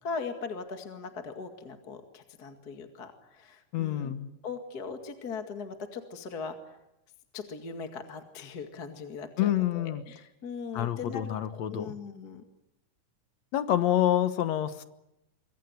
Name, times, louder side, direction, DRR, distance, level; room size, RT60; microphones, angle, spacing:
voice 1, 0.0-4.1 4.4-6.8 7.3-12.4, left 5 dB, 35° left, 6 dB, 2.2 m, -40 dB
voice 2, 3.7-4.3 9.4-10.0 10.7-11.9 13.5-14.8, left 12 dB, 65° left, 12 dB, 2.2 m, -27 dB
25.5 x 23.5 x 9.4 m, 0.88 s
omnidirectional pair, 3.7 m